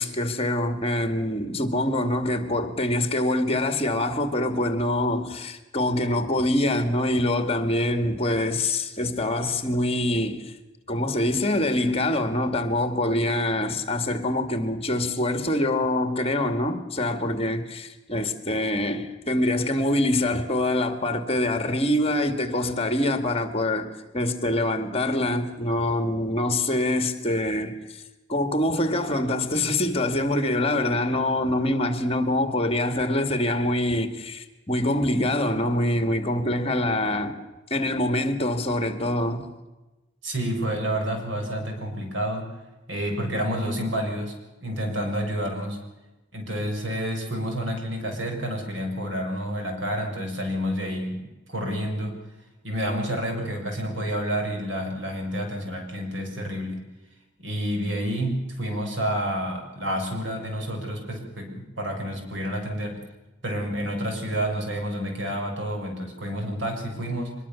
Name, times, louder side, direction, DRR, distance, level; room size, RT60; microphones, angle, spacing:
voice 1, 0.0-10.5 10.9-23.9 24.1-27.8 28.3-37.4 37.7-39.5, left 1 dB, 30° left, 2.1 m, -25 dB
voice 2, 40.2-42.5 42.9-44.3 44.6-45.8 46.3-52.1 52.6-56.8 57.4-63.0 63.4-67.4, equal, 85° right, 6.8 m, -29 dB
24.0 x 21.5 x 7.1 m
head